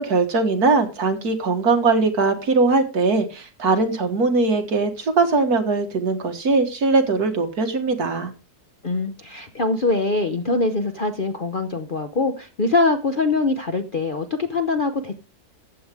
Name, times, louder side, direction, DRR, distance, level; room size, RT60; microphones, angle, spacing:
voice 1, 0.0-8.3, right 3 dB, 65° right, 6 dB, 2.1 m, -20 dB
voice 2, 8.8-15.1, left 3 dB, 40° left, 7 dB, 0.8 m, -23 dB
14.5 x 8.0 x 3.5 m, 0.32 s
omnidirectional pair, 1.8 m